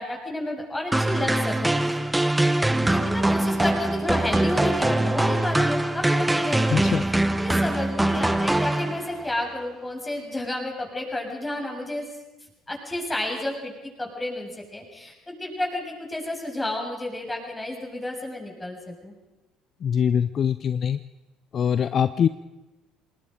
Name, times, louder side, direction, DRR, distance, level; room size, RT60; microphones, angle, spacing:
voice 1, 0.0-2.0 2.8-12.1 12.7-13.7 14.0-19.1, left 1 dB, 15° left, 0 dB, 7.5 m, -31 dB
sound 1, 0.9-9.3, right 1 dB, 10° right, 1.4 m, -23 dB
voice 2, 6.7-7.0 19.8-21.0 21.5-22.3, left 8 dB, 45° left, 14 dB, 0.6 m, -23 dB
27.0 x 20.0 x 5.2 m, 1.1 s
hypercardioid pair, 55°, 0 cm